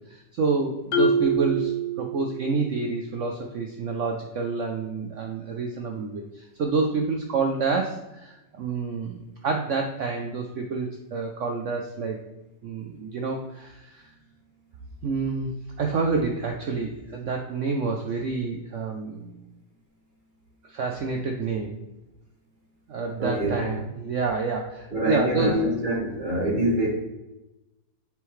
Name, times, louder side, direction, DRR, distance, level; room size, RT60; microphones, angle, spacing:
voice 1, 0.1-12.2 12.6-14.1 15.0-19.4 20.6-21.7 22.9-25.6, right 4 dB, 75° right, 3 dB, 0.7 m, -28 dB
Marimba xylophone, 0.9-2.7, right 3 dB, 60° left, 1.7 m, -25 dB
voice 2, 23.2-23.7 24.9-26.9, right 1 dB, 25° right, -4 dB, 1.7 m, -25 dB
6.9 x 4.5 x 3.1 m, 0.98 s
omnidirectional pair, 2.0 m